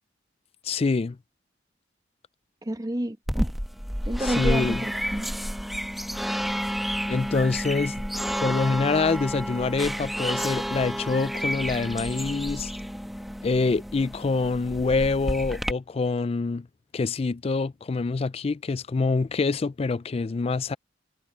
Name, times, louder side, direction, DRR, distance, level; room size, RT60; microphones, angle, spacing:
voice 1, 0.6-1.2 4.2-4.8 7.1-8.0 8.4-12.7 13.4-16.7 16.9-20.8, left 4 dB, 30° left, 0.4 m, -26 dB
voice 2, 2.6-3.5 4.1-5.3, right 1 dB, 20° right, 1.0 m, -30 dB
sound 1, 3.3-15.7, equal, ahead, 1.2 m, -30 dB
head